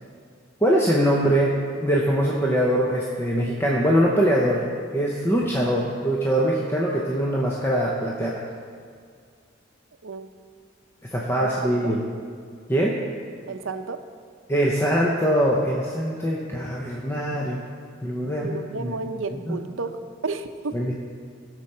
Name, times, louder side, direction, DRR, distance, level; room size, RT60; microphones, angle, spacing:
voice 1, 0.6-1.5 1.8-4.6 4.9-8.4 11.1-12.0 12.7-13.0 14.5-17.6 18.0-19.1 19.5-19.6 20.7-20.9, equal, 10° left, -3 dB, 0.8 m, -22 dB
voice 2, 11.4-12.0 13.5-14.0 18.3-20.8, right 4 dB, 85° right, 8 dB, 0.7 m, -32 dB
16.5 x 6.8 x 4.3 m, 2.1 s
head